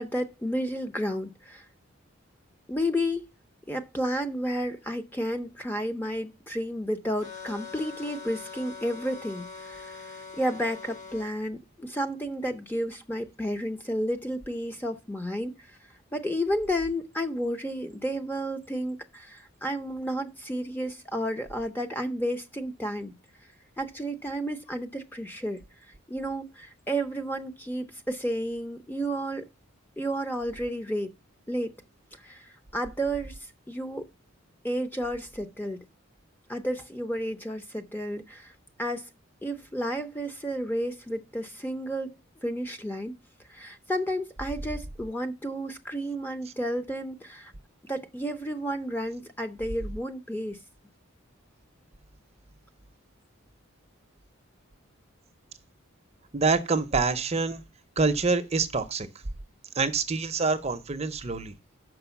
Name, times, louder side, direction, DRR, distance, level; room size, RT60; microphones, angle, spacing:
voice 1, 0.0-1.6 2.7-3.3 3.7-15.8 16.1-23.1 23.8-25.6 26.1-29.5 30.0-31.1 31.5-31.8 32.2-33.4 33.7-34.1 34.6-35.8 36.5-38.5 38.8-39.1 39.4-42.2 42.4-43.1 43.5-47.5 47.8-50.6, equal, 10° left, 0.6 m, -31 dB
sound 1, 7.2-11.3, left 5 dB, 35° left, 1.6 m, -42 dB
voice 2, 56.3-57.6 58.0-59.1 59.7-61.5, right 4 dB, 30° right, 0.6 m, -26 dB
6.4 x 5.3 x 7.0 m
head